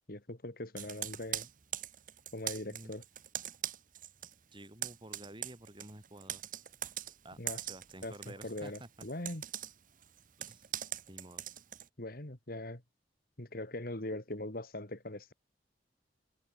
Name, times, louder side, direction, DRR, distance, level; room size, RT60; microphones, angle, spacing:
voice 1, 0.1-1.5 2.3-3.0 7.4-7.6 8.0-8.1 8.4-9.4 12.0-12.8 13.4-15.3, left 1 dB, 55° left, 3.3 m, -41 dB
Computer keyboard, 0.8-4.3 4.6-11.9, right 11 dB, 50° right, 1.6 m, -42 dB
voice 2, 4.5-6.4 7.2-9.1 10.4-10.7 11.1-11.5, right 1 dB, 30° right, 7.0 m, -51 dB
head